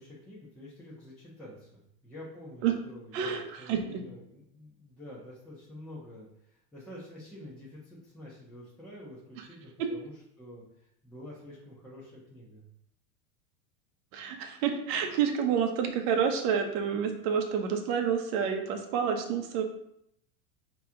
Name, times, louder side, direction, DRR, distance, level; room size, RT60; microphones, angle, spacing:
voice 1, 0.0-12.6, left 1 dB, 5° left, -9 dB, 0.9 m, -48 dB
voice 2, 3.1-4.0 9.4-9.5 9.8-9.9 14.1-19.6, right 7 dB, 50° right, 5 dB, 0.9 m, -29 dB
4.7 x 3.0 x 3.6 m, 0.74 s
supercardioid pair, 145°, 45 cm